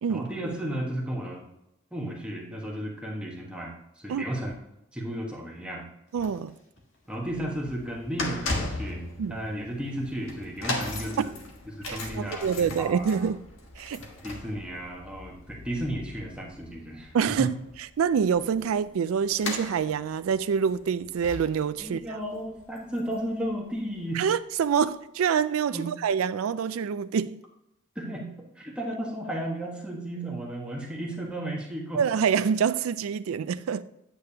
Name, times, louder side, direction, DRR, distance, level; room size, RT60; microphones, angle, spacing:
voice 1, 0.1-1.4 1.9-4.5 4.9-5.9 7.1-9.0 9.3-11.3 11.8-13.3 14.0-17.5 21.8-24.3 25.7-25.9 27.9-32.0, right 1 dB, 5° right, 1.4 m, -34 dB
sound 1, 4.5-4.7 5.3-5.4 6.1-8.0 8.9-9.2 10.4-10.5 11.8-11.9 12.6-13.0 14.3-14.5 16.1-16.2 17.3-17.7 18.4-18.5, left 1 dB, 60° left, 2.2 m, -52 dB
voice 2, 6.1-6.5 9.2-9.4 11.9-13.4 13.8-14.0 17.1-17.6 18.0-22.0 24.1-27.4 31.9-33.8, right 7 dB, 90° right, 0.4 m, -26 dB
sound 2, 7.1-23.5 23.7-24.0 24.8-24.9, left 2 dB, 75° left, 1.5 m, -38 dB
9.0 x 8.6 x 2.9 m
head